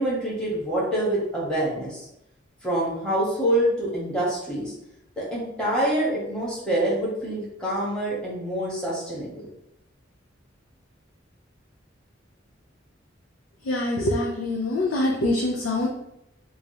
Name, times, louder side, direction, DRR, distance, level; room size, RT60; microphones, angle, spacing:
voice 1, 0.0-2.1 2.6-4.7 5.2-9.5, right 1 dB, 5° left, -7 dB, 1.0 m, -26 dB
voice 2, 13.6-15.9, left 1 dB, 80° left, -1 dB, 0.4 m, -24 dB
3.0 x 2.3 x 2.8 m, 0.81 s
head